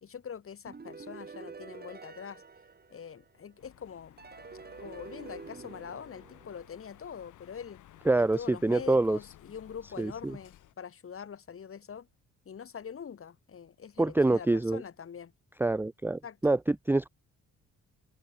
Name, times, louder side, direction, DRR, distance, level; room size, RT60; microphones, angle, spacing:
voice 1, 0.0-2.4 2.9-4.2 4.8-7.8 8.3-12.1 12.4-15.3 16.2-16.4, left 7 dB, 45° left, 3.2 m, -44 dB
sound 1, 0.7-3.5 4.2-7.0, right 4 dB, 30° right, 7.1 m, -48 dB
sound 2, 3.6-10.7, left 13 dB, 80° left, 3.1 m, -56 dB
voice 2, 8.1-9.2 10.0-10.4 14.0-14.8 15.6-17.1, right 2 dB, 5° right, 0.6 m, -26 dB
open air
cardioid pair, 90°, 30 cm